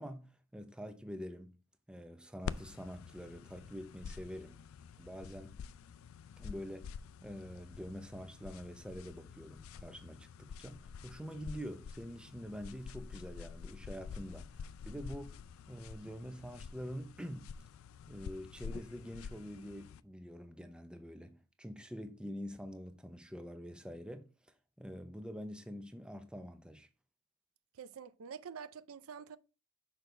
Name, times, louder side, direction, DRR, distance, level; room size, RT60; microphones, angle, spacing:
voice 1, 0.0-1.6 1.9-4.6 5.0-5.6 6.4-6.9 7.2-15.3 15.7-17.5 18.1-24.3 24.8-26.9, equal, 5° right, 0.6 m, -46 dB
sound 1, 2.4-20.0, left 6 dB, 70° left, 0.3 m, -48 dB
voice 2, 27.7-29.4, right 6 dB, 75° right, 0.5 m, -47 dB
6.4 x 5.1 x 3.2 m
head